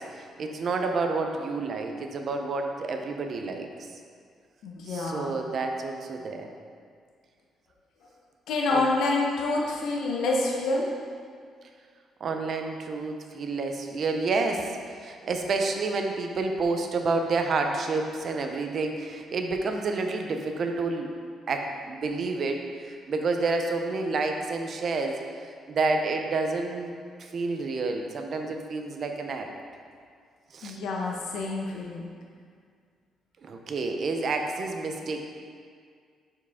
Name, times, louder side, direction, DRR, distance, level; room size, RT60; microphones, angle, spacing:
voice 1, 0.1-3.9 4.9-6.5 8.7-8.8 12.2-21.1 21.5-25.2 25.7-26.9 27.2-29.5 30.5-30.8 33.4-35.2, right 3 dB, 40° right, 4 dB, 0.5 m, -29 dB
voice 2, 4.6-5.4 8.5-10.9 30.6-32.1, left 2 dB, 75° left, -2 dB, 0.8 m, -27 dB
6.7 x 4.8 x 3.5 m, 2.1 s
cardioid pair, 165°, 0 cm